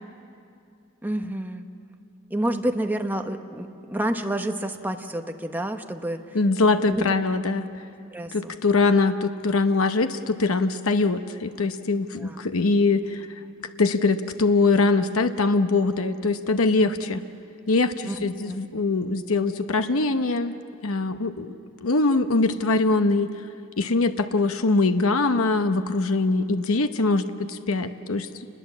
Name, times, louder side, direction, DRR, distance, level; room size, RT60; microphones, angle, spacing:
voice 1, 1.0-1.7 2.3-6.4 6.9-7.1 8.1-8.5 12.2-12.4 18.0-18.6, right 1 dB, 10° right, 5 dB, 1.0 m, -29 dB
voice 2, 6.3-7.7 8.3-13.3 13.8-17.2 17.7-20.5 20.8-21.6 21.8-23.3 23.8-28.3, left 3 dB, 80° left, 9 dB, 0.9 m, -22 dB
28.5 x 21.0 x 7.4 m, 2.5 s
head